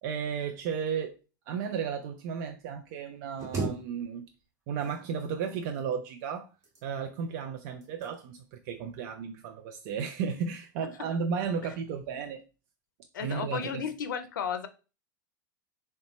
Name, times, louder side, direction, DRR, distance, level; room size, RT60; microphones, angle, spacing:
voice 1, 0.0-1.2 1.5-4.2 4.7-6.5 6.8-12.4 13.2-13.8, right 6 dB, 50° right, 0.4 m, -34 dB
sound 1, 3.4-4.5 4.7-5.5 6.4-7.2 7.8-8.1 8.6-8.8, right 3 dB, 30° right, 1.4 m, -37 dB
voice 2, 13.1-14.7, left 7 dB, 70° left, 0.5 m, -33 dB
3.9 x 2.2 x 3.0 m
figure-of-eight pair, 85°, 11 cm